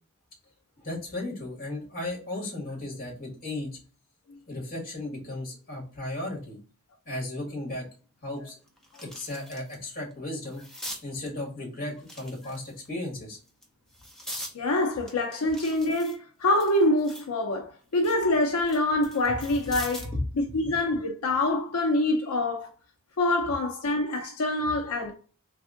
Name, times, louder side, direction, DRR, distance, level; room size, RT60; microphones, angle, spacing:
voice 1, 0.8-3.7 4.5-6.6 7.0-7.9 8.2-8.6 9.0-10.6 11.0-13.4 20.1-20.2 20.6-20.7, left 1 dB, 40° left, 1.7 m, -35 dB
sound 1, 7.7-7.8 8.3-9.8 10.1-11.0 12.0-12.9 13.5-14.6 15.1-17.3 17.7-20.2 21.6-21.8, equal, ahead, 0.7 m, -42 dB
voice 2, 14.5-20.1 20.4-22.7 23.2-25.1, left 1 dB, 80° left, 0.6 m, -25 dB
3.5 x 3.3 x 2.5 m
head